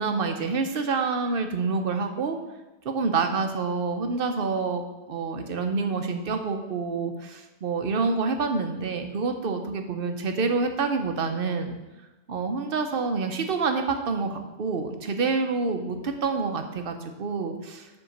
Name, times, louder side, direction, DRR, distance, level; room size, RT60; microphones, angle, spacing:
voice 1, 0.0-2.4 2.8-4.8 5.1-11.8 12.3-17.9, right 4 dB, 60° right, 6 dB, 1.0 m, -27 dB
7.7 x 3.6 x 6.5 m, 1.1 s
omnidirectional pair, 1.1 m